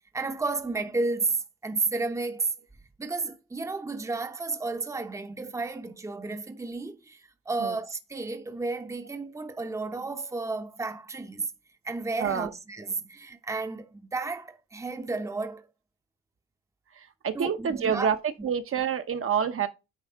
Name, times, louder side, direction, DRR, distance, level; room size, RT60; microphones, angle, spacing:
voice 1, 0.1-2.5 3.0-11.5 11.8-15.7 17.3-18.1, right 3 dB, 10° right, 0.8 m, -32 dB
voice 2, 12.2-12.5 16.9-19.7, right 7 dB, 45° right, 0.9 m, -28 dB
9.4 x 3.4 x 4.7 m
cardioid pair, 90°, 30 cm